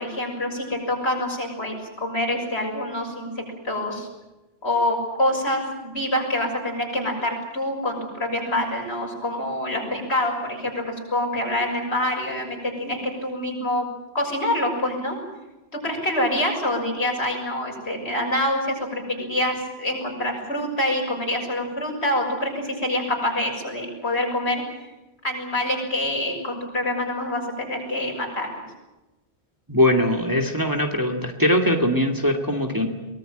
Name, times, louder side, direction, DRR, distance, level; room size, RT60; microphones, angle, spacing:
voice 1, 0.0-4.1 4.6-13.9 14.1-15.2 15.7-24.6 25.2-28.5, left 1 dB, 80° left, 1 dB, 6.9 m, -26 dB
voice 2, 29.7-32.9, left 1 dB, 20° right, 3 dB, 2.4 m, -21 dB
23.5 x 19.0 x 9.1 m, 1.0 s
omnidirectional pair, 1.1 m